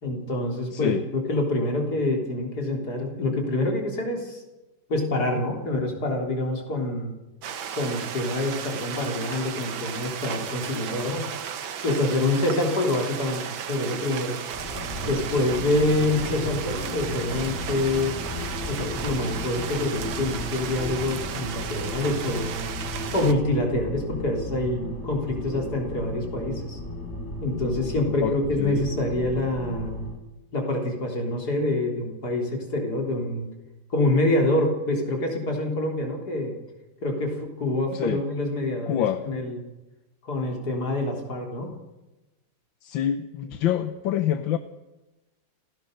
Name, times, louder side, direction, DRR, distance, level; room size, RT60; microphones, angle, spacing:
voice 1, 0.0-4.4 4.9-7.1 7.7-11.3 11.8-14.4 15.1-18.2 18.7-22.6 23.1-26.8 27.4-30.0 30.5-33.5 33.9-36.6 37.0-39.6 40.2-41.7, left 2 dB, 55° left, 2 dB, 4.2 m, -26 dB
voice 2, 0.7-1.0 28.2-28.9 37.9-38.2 38.9-39.2 42.8-44.6, left 10 dB, 80° left, 10 dB, 1.7 m, -26 dB
sound 1, 7.4-23.3, right 8 dB, 85° right, 2.0 m, -35 dB
sound 2, 14.5-30.2, left 1 dB, 35° left, 3.5 m, -34 dB
28.5 x 16.0 x 6.7 m, 1.1 s
omnidirectional pair, 2.1 m